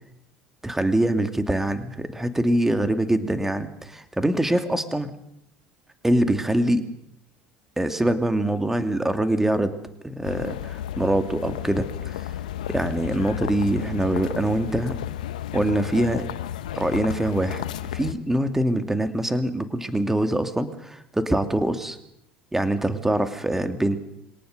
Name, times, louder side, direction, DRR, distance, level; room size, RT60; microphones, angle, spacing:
voice 1, 0.6-5.1 6.0-6.8 7.8-9.7 10.0-12.3 12.7-15.0 15.5-16.3 16.7-17.6 17.9-22.0 22.5-24.0, right 1 dB, 10° right, 8 dB, 2.5 m, -24 dB
sound 1, 10.2-18.1, left 11 dB, 85° left, 0.9 m, -32 dB
24.0 x 18.5 x 6.7 m, 0.79 s
hypercardioid pair, 70°, 4 cm